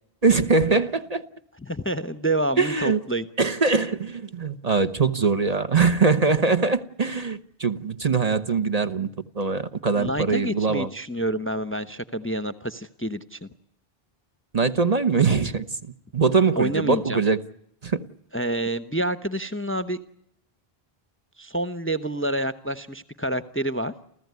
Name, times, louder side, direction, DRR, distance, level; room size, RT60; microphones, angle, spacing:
voice 1, 0.2-1.2 2.6-3.0 3.4-9.1 9.4-10.9 14.5-15.6 16.1-17.4 17.8-18.0, right 4 dB, 40° right, 1.1 m, -22 dB
voice 2, 1.6-3.3 10.0-13.5 16.5-17.2 18.3-20.0 21.4-23.9, right 1 dB, 15° left, 0.9 m, -28 dB
30.0 x 14.5 x 9.5 m
omnidirectional pair, 1.0 m